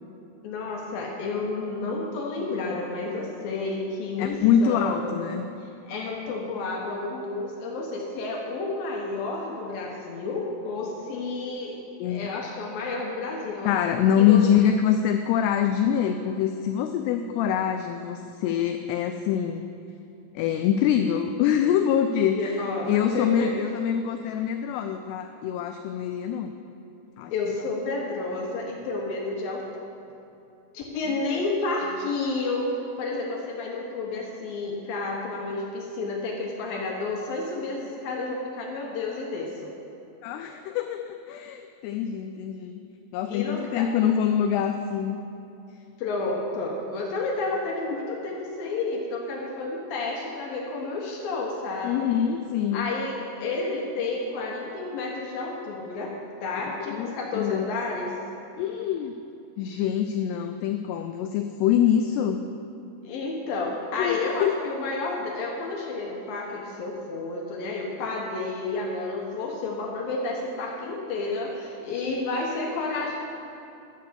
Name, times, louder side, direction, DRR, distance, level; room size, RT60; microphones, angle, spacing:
voice 1, 0.4-5.2 5.6-11.8 12.0-13.8 14.2-14.4 22.3-23.5 27.3-29.7 30.7-39.7 43.3-43.9 46.0-52.1 52.7-56.2 56.4-58.1 63.0-73.2, left 3 dB, 70° left, -1 dB, 2.3 m, -31 dB
voice 2, 4.2-5.5 12.0-12.3 13.6-19.7 20.3-26.5 27.2-27.3 31.3-31.4 40.2-42.8 43.1-45.2 51.8-52.9 56.8-57.7 58.6-59.2 59.6-62.4 64.0-64.5, left 9 dB, 90° left, 7 dB, 2.3 m, -25 dB
12.0 x 7.9 x 6.7 m, 2.7 s
omnidirectional pair, 5.3 m